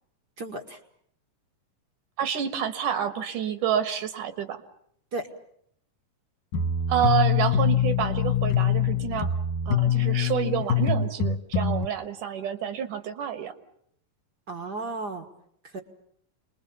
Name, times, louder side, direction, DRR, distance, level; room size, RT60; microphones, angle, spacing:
voice 1, 0.4-0.8 5.1-5.3 14.5-15.2 15.6-15.8, right 3 dB, 45° right, 4 dB, 1.3 m, -34 dB
voice 2, 2.2-4.6 6.9-9.3 9.7-13.5, right 9 dB, 70° right, 10 dB, 2.8 m, -28 dB
sound 1, 6.5-11.9, left 7 dB, 65° left, 2.4 m, -24 dB
28.5 x 21.5 x 7.0 m, 0.69 s
omnidirectional pair, 3.9 m